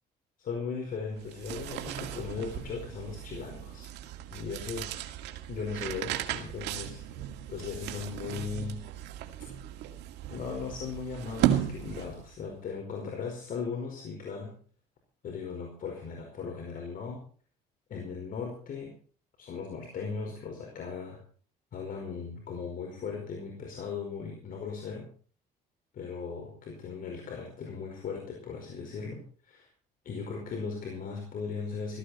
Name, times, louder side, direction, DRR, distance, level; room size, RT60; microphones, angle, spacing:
voice 1, 0.4-3.9 4.3-5.0 5.5-7.0 7.5-8.8 9.4-9.5 10.3-14.6 15.2-17.2 17.9-18.9 19.4-21.2 21.7-25.1 25.9-29.7 30.0-32.0, left 5 dB, 55° left, 2 dB, 4.8 m, -38 dB
sound 1, 1.2-12.4, right 12 dB, 85° right, 2.2 m, -35 dB
16.5 x 15.0 x 4.3 m, 0.42 s
cardioid pair, 110°, 17 cm